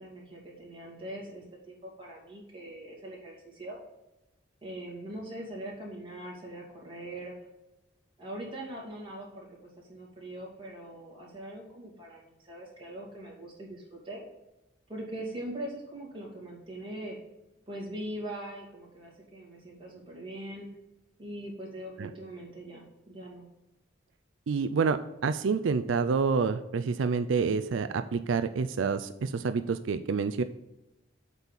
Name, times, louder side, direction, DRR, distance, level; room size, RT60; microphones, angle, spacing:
voice 1, 0.0-3.8 4.6-7.3 8.2-14.2 14.9-17.2 17.7-20.7 21.2-23.5, right 1 dB, 30° right, -3 dB, 2.8 m, -42 dB
voice 2, 24.5-30.4, right 5 dB, 90° right, 11 dB, 0.4 m, -28 dB
8.0 x 4.2 x 7.0 m, 0.95 s
head